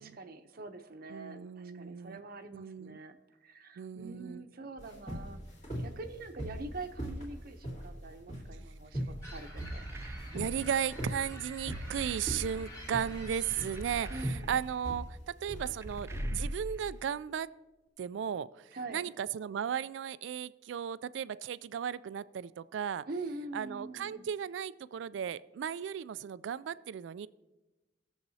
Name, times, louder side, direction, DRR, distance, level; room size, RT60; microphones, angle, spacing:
voice 1, 0.0-5.4 5.8-9.8 14.1-14.5 18.7-19.1 23.1-24.3, right 3 dB, 55° right, 7 dB, 0.7 m, -44 dB
voice 2, 1.1-2.2 2.5-3.0 3.8-4.4 10.3-17.5 18.0-23.0 23.5-27.3, right 8 dB, 90° right, 17 dB, 0.3 m, -36 dB
sound 1, 4.8-17.0, equal, 45° left, 2.4 m, -40 dB
sound 2, 9.2-14.3, equal, 20° left, 2.3 m, -47 dB
sound 3, 9.7-10.7 11.7-12.8 13.8-14.8 15.8-16.9, right 2 dB, 15° right, 0.4 m, -46 dB
20.0 x 7.2 x 2.8 m, 1.1 s
head